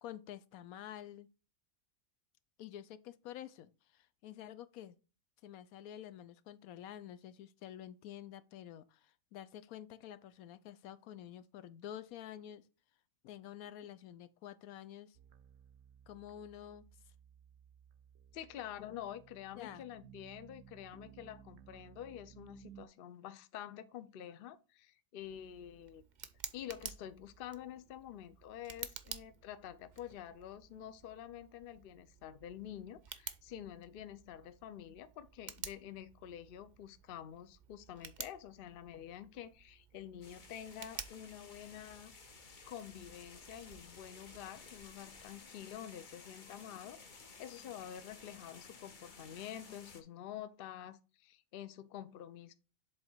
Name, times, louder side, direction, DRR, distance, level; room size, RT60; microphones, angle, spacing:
voice 1, 0.0-1.3 2.6-5.0 5.4-12.6 13.2-15.2 16.1-16.9 18.8-18.9 19.6-19.8, left 11 dB, 85° left, 1.1 m, -49 dB
sound 1, 15.1-22.9, right 9 dB, 70° right, 0.9 m, -59 dB
voice 2, 18.3-26.0 26.5-42.1 42.7-52.5, left 10 dB, 55° left, 0.6 m, -48 dB
Tick, 25.2-44.9, right 7 dB, 50° right, 0.6 m, -52 dB
sound 2, 40.2-50.0, left 4 dB, 40° left, 0.9 m, -55 dB
7.6 x 3.7 x 4.4 m
omnidirectional pair, 1.5 m